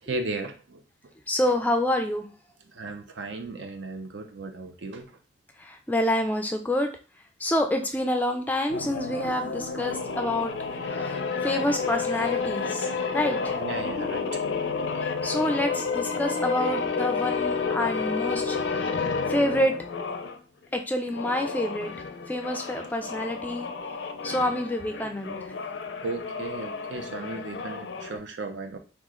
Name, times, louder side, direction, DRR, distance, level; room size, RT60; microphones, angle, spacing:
voice 1, 0.0-0.8 2.7-5.1 13.6-14.4 26.0-28.8, right 3 dB, 80° right, 0.6 m, -35 dB
voice 2, 1.3-2.3 5.6-6.9 7.4-10.5 10.8-13.6 15.0-19.0 19.3-19.8 20.7-21.9 22.3-23.7 24.2-25.5, left 1 dB, 10° left, 0.3 m, -27 dB
sound 1, 8.7-20.4 21.0-28.2, left 5 dB, 80° left, 0.4 m, -31 dB
3.0 x 2.4 x 3.6 m
head